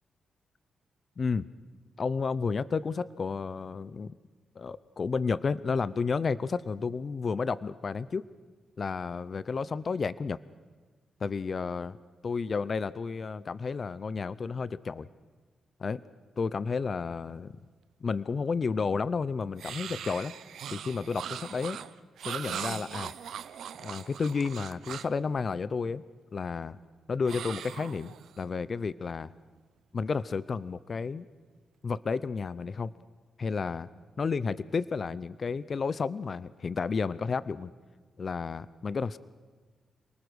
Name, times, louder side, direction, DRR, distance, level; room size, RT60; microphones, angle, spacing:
voice 1, 2.0-4.1 4.6-8.2 8.8-10.4 11.2-12.0 12.2-15.1 15.8-16.0 16.4-17.5 18.0-20.3 20.7-21.8 22.2-23.1 23.8-26.0 26.3-26.8 27.1-29.3 29.9-31.2 31.8-32.9 33.4-33.9 34.2-37.7 38.2-39.2, left 5 dB, 45° left, 18 dB, 0.6 m, -31 dB
sound 1, 19.6-25.2 27.3-28.4, right 9 dB, 80° right, 0.8 m, -40 dB
28.0 x 19.5 x 6.4 m, 1.4 s
cardioid pair, 90°, 0 cm